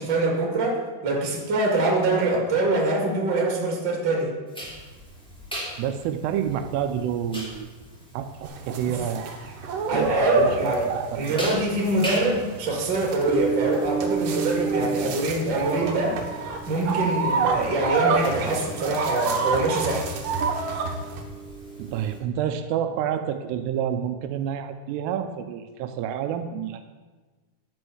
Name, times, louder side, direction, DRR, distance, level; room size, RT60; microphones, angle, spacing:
voice 1, 0.0-4.3 8.9-9.0 9.9-10.9 11.2-16.2 16.7-20.1, right 2 dB, 35° right, -1 dB, 1.9 m, -24 dB
sound 1, 4.5-22.2, right 4 dB, ahead, 1.9 m, -34 dB
voice 2, 5.8-7.7 8.1-9.3 9.9-11.4 21.8-26.8, right 9 dB, 85° right, 7 dB, 2.7 m, -29 dB
sound 2, 8.4-21.2, right 4 dB, 65° right, 2.3 m, -28 dB
11.5 x 5.4 x 7.8 m, 1.3 s
omnidirectional pair, 4.8 m